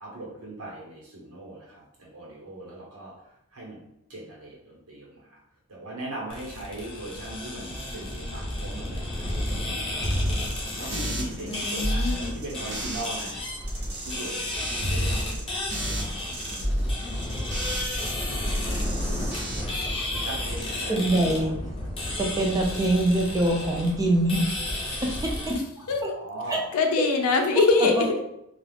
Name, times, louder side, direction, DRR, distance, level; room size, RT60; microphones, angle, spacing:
voice 1, 0.0-3.1 3.5-3.8 4.1-5.2 5.7-10.1 10.8-13.4 13.8-15.3 15.7-16.8 17.9-18.4 18.8-19.3 20.0-21.5 26.1-26.7, right 2 dB, 90° right, 1.0 m, -40 dB
sound 1, 6.3-25.6, left 1 dB, 25° left, 0.6 m, -32 dB
sound 2, 10.0-13.3 13.6-18.1 18.4-19.6, equal, 50° right, 0.8 m, -31 dB
voice 2, 11.4-12.3 25.9-26.0 26.7-28.2, left 3 dB, 85° left, 0.5 m, -23 dB
voice 3, 20.9-21.6 22.2-25.6 26.0-26.1 26.5-26.6 27.8-28.0, right 1 dB, 15° right, 0.3 m, -24 dB
2.3 x 2.3 x 3.3 m
head